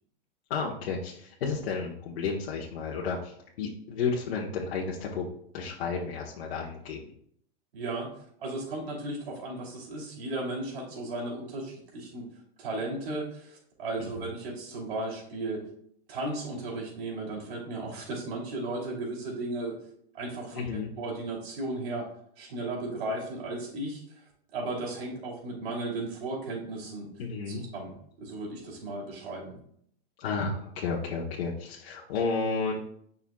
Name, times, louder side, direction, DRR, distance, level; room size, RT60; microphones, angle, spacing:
voice 1, 0.5-5.3 5.5-7.0 14.0-14.3 20.5-20.9 27.2-27.6 30.2-32.8, left 4 dB, 70° left, -3 dB, 1.3 m, -32 dB
voice 2, 7.7-8.1 8.4-12.2 12.6-15.6 16.1-19.8 20.1-22.1 22.4-24.2 24.5-27.1 27.5-29.6, right 2 dB, 75° right, -2 dB, 3.0 m, -35 dB
9.9 x 5.5 x 2.3 m, 0.65 s
supercardioid pair, 165°, 31 cm